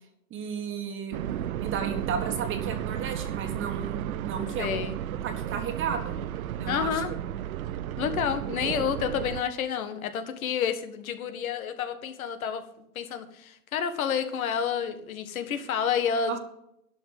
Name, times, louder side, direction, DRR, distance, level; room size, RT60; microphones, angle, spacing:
voice 1, 0.3-4.9 5.2-6.2 6.6-7.2 16.3-16.4, right 6 dB, 25° right, 5 dB, 1.7 m, -34 dB
sound 1, 1.1-9.4, right 11 dB, 70° right, 0.8 m, -33 dB
voice 2, 4.6-5.0 6.7-7.1 8.0-12.6 12.9-16.4, left 7 dB, 65° left, 9 dB, 1.8 m, -29 dB
11.5 x 5.8 x 7.8 m, 0.78 s
hypercardioid pair, 120°, 44 cm